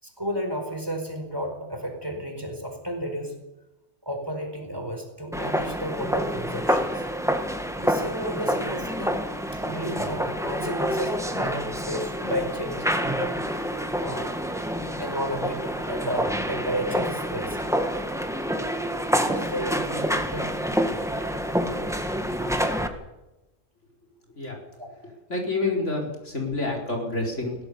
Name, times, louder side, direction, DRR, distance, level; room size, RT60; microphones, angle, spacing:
voice 1, 0.0-3.4 4.0-7.1 7.5-9.2 9.6-14.3 15.0-17.7 19.3-20.6 24.7-24.9, equal, 20° right, 3 dB, 4.7 m, -33 dB
sound 1, 5.3-22.9, equal, ahead, 1.7 m, -27 dB
voice 2, 25.3-27.6, left 2 dB, 65° left, 0 dB, 5.0 m, -28 dB
22.0 x 17.5 x 7.0 m, 1.0 s
omnidirectional pair, 1.3 m